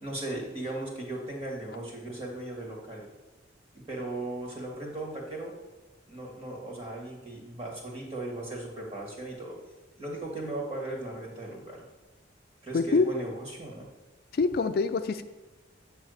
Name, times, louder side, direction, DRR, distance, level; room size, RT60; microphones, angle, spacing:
voice 1, 0.0-3.1 3.7-5.5 6.1-9.6 10.0-11.9 12.6-13.9, right 2 dB, 30° right, -2 dB, 2.0 m, -37 dB
voice 2, 12.7-13.2 14.3-15.2, left 4 dB, 55° left, 9 dB, 0.4 m, -25 dB
8.7 x 3.4 x 6.5 m, 1.2 s
head